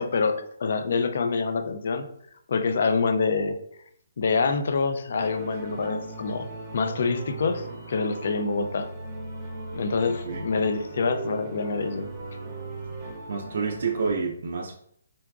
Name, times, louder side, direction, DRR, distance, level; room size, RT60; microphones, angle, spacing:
voice 1, 0.0-2.1 2.5-3.6 4.2-8.9 9.7-12.1, left 4 dB, 50° left, 8 dB, 0.3 m, -26 dB
sound 1, 5.1-14.1, right 2 dB, 15° right, 0.7 m, -38 dB
voice 2, 10.0-10.5 13.3-14.7, right 5 dB, 55° right, 0 dB, 0.3 m, -29 dB
3.8 x 2.3 x 2.3 m, 0.69 s
hypercardioid pair, 170°, 0 cm